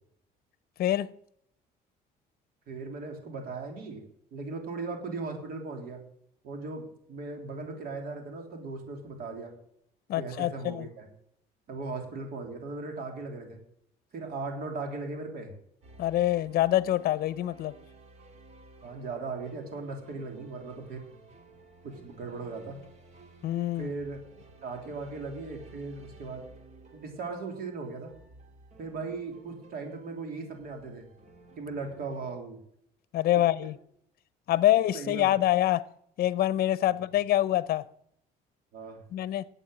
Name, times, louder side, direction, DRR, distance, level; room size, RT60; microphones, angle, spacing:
voice 1, 0.8-1.1 10.1-10.9 16.0-17.7 23.4-23.9 33.1-33.8 34.5-35.9 36.2-37.8 39.1-39.5, left 14 dB, 65° left, 0.7 m, -25 dB
voice 2, 2.7-4.0 4.3-6.0 6.4-9.5 10.1-11.1 11.7-13.6 14.1-15.5 18.8-21.1 21.8-22.8 23.8-24.2 24.6-26.5 26.9-28.1 28.8-31.1 31.6-32.6 33.3-33.4 34.9-35.3 36.8-37.0 38.7-39.0, right 3 dB, 65° right, 3.3 m, -38 dB
sound 1, 15.8-32.4, right 3 dB, 40° right, 2.4 m, -54 dB
11.0 x 8.2 x 8.1 m
cardioid pair, 110°, 17 cm